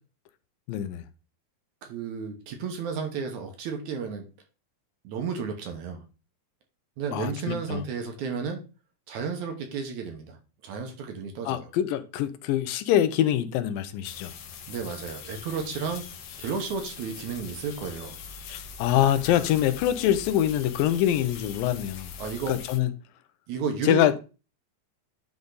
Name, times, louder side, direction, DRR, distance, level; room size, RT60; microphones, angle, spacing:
voice 1, 0.7-1.0 7.1-7.8 11.5-14.3 18.5-22.1 22.5-22.9 23.8-24.2, left 11 dB, 85° left, 2.4 m, -24 dB
voice 2, 1.8-4.2 5.0-6.0 7.0-8.6 9.1-10.4 10.6-11.7 14.7-16.1 16.4-18.2 22.2-22.5 23.5-24.2, right 5 dB, 65° right, 2.3 m, -32 dB
sound 1, 14.0-22.8, left 6 dB, 70° left, 1.7 m, -42 dB
10.0 x 3.6 x 3.9 m
omnidirectional pair, 4.0 m